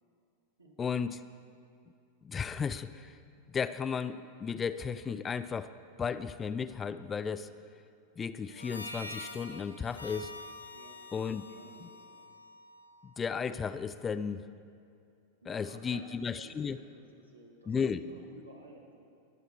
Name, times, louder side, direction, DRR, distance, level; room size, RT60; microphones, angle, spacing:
voice 1, 0.8-1.2 2.2-3.1 3.5-5.7 6.0-7.5 8.2-10.3 11.1-11.4 13.2-14.4 15.5-16.8 17.7-18.0, left 6 dB, 20° left, 13 dB, 0.4 m, -34 dB
Harmonica, 8.5-13.1, left 1 dB, 80° left, 0.9 m, -46 dB
voice 2, 11.4-12.3 15.4-18.9, right 2 dB, 80° right, 0 dB, 1.8 m, -54 dB
21.5 x 8.0 x 4.2 m, 2.5 s
figure-of-eight pair, 90°, 0 cm